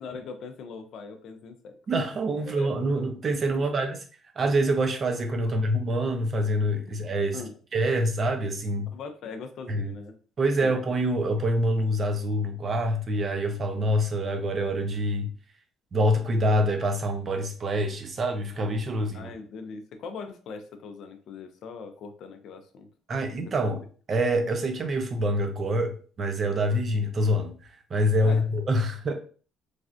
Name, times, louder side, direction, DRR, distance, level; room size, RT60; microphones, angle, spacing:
voice 1, 0.0-1.8 2.4-2.7 3.5-3.8 5.5-5.6 6.9-7.0 7.3-7.6 8.9-10.1 10.6-10.8 19.1-22.9 23.6-23.7 28.2-28.5, left 5 dB, 55° left, 6 dB, 0.4 m, -41 dB
voice 2, 1.9-4.0 4.4-7.4 7.7-8.9 9.7-9.9 10.4-15.3 15.9-19.3 23.1-23.8 24.1-29.1, equal, 30° right, 5 dB, 0.5 m, -26 dB
3.1 x 2.5 x 2.4 m, 0.40 s
cardioid pair, 155°, 0 cm